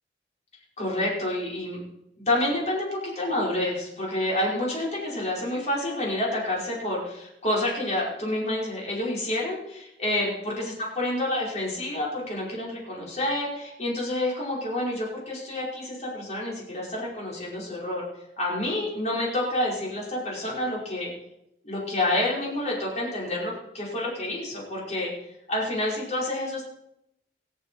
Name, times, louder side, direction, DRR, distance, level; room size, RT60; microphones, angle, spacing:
voice 1, 0.8-1.8 2.3-18.0 18.4-21.1 21.6-25.1 25.5-26.6, left 1 dB, 40° left, -4 dB, 5.0 m, -28 dB
23.0 x 7.7 x 4.6 m, 0.83 s
head